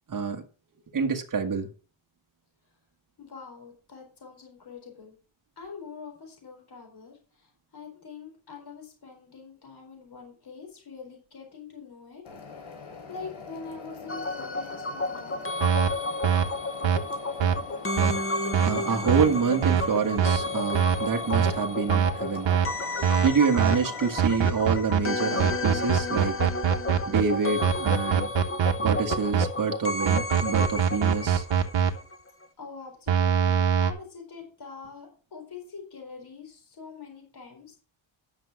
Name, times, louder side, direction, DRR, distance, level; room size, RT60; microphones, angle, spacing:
voice 1, 0.1-0.4 0.9-1.7 18.6-22.5 23.2-26.4 27.0-28.3 28.8-31.4, right 5 dB, 40° right, 1.7 m, -27 dB
voice 2, 3.2-5.2 5.6-12.2 13.1-15.5 32.6-37.8, left 5 dB, 50° left, 4.3 m, -44 dB
sound 1, 12.2-24.2, left 4 dB, 75° left, 3.7 m, -44 dB
sound 2, 14.1-32.2 32.4-32.5, left 2 dB, 25° left, 1.0 m, -32 dB
sound 3, 15.6-15.9 16.2-16.4 16.8-17.0 17.4-17.6 18.0-18.1 18.5-18.7 19.1-19.2 19.6-19.8 20.2-20.4 20.7-21.0 21.3-21.5 21.9-22.1 22.4-22.7 23.0-23.3 23.6-23.7 24.2-25.0 25.4-27.2 27.6-29.4 30.1-31.9 33.1-33.9, right 8 dB, 65° right, 1.3 m, -22 dB
10.5 x 6.4 x 6.0 m
wide cardioid pair, 120°, 48 cm